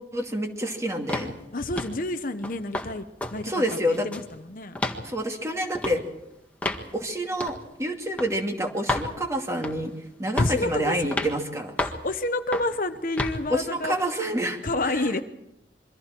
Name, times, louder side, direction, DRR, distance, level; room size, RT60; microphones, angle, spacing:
voice 1, 0.1-1.4 3.4-4.1 5.0-6.0 6.9-9.9 10.2-11.7 13.5-15.1, equal, 15° right, 2 dB, 2.5 m, -28 dB
sound 1, 1.1-1.3 1.8-2.0 2.4-2.9 3.2-3.4 3.7-4.3 4.8-5.0 5.8-6.0 6.6-6.9 7.4-7.6 8.2-8.3 8.9-9.1 9.6-9.9 10.4-10.6 11.1-11.3 11.8-12.0 12.5-12.7 13.2-13.4, left 1 dB, 10° left, 1.7 m, -29 dB
voice 2, 1.5-3.0 3.3-4.8 10.4-11.1 11.8-14.0 14.6-15.2, left 2 dB, 50° left, 9 dB, 0.9 m, -29 dB
27.5 x 24.0 x 4.5 m, 0.85 s
head